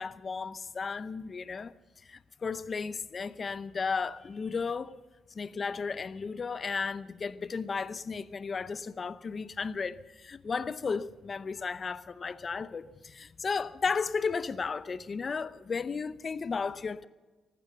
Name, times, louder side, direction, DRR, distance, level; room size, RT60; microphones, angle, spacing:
voice 1, 0.0-1.7 2.0-5.0 5.3-17.1, left 5 dB, 40° left, 0.7 m, -34 dB
15.5 x 12.0 x 7.1 m
cardioid pair, 90°, 0 cm